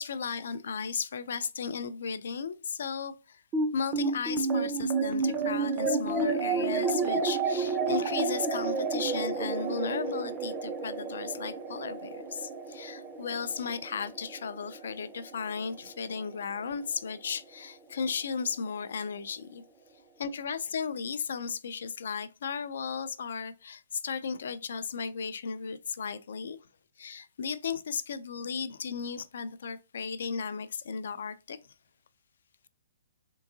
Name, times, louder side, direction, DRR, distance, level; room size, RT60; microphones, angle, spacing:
voice 1, 0.0-3.4 3.7-19.6 20.2-26.6 27.0-31.6, left 6 dB, 60° left, 0.4 m, -35 dB
sound 1, 3.5-16.1, right 4 dB, 15° right, 0.4 m, -31 dB
3.7 x 3.5 x 2.7 m
hypercardioid pair, 175°, 0 cm